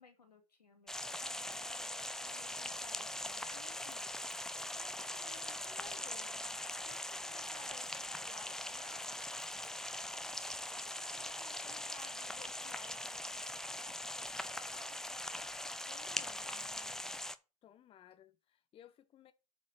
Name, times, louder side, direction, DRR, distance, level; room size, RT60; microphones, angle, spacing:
voice 1, 0.0-4.1 4.7-6.6 6.8-10.5 10.8-14.3 14.6-15.6 15.9-17.3, left 3 dB, 85° left, 2.5 m, -59 dB
sound 1, 0.9-17.4, left 1 dB, 5° left, 0.6 m, -41 dB
voice 2, 17.6-19.3, left 10 dB, 30° left, 0.9 m, -60 dB
8.6 x 4.3 x 7.2 m
figure-of-eight pair, 90°, 20 cm